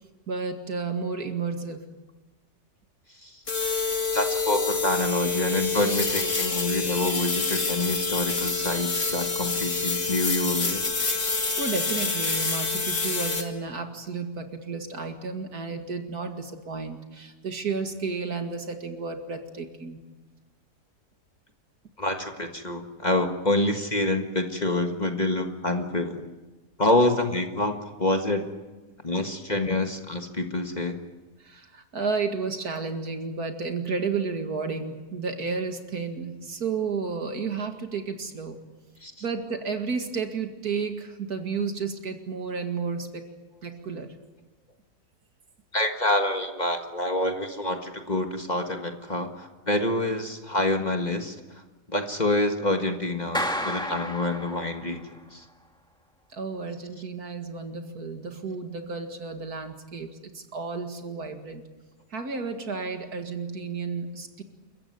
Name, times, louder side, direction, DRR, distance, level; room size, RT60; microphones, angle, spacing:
voice 1, 0.3-1.9 11.6-20.0 31.4-38.6 39.2-43.3 43.6-44.1 56.3-61.6 62.1-64.4, right 4 dB, 70° right, 5 dB, 2.6 m, -32 dB
sound 1, 3.5-13.4, left 4 dB, 50° left, 2.7 m, -27 dB
voice 2, 4.1-10.8 22.0-26.3 26.8-28.5 29.0-31.0 39.0-39.1 45.7-51.6 51.9-55.0 55.3-55.4, left 1 dB, 25° left, 4 dB, 1.7 m, -27 dB
Clapping, 53.3-55.1, equal, 5° left, 1.9 m, -31 dB
29.5 x 15.0 x 9.5 m, 1.2 s
omnidirectional pair, 1.7 m